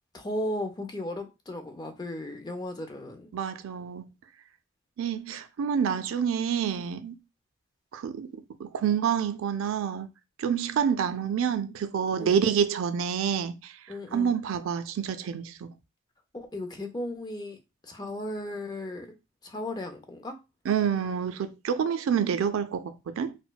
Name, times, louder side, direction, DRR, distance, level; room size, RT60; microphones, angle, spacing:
voice 1, 0.1-3.3 12.2-12.4 13.9-14.3 16.3-17.6 17.8-19.1 19.4-20.4, left 1 dB, 20° left, 0.4 m, -35 dB
voice 2, 3.3-4.1 5.0-7.2 7.9-8.3 8.6-10.1 10.4-13.8 14.1-15.7 20.7-23.4, right 7 dB, 80° right, 0.4 m, -28 dB
4.2 x 2.1 x 2.2 m
head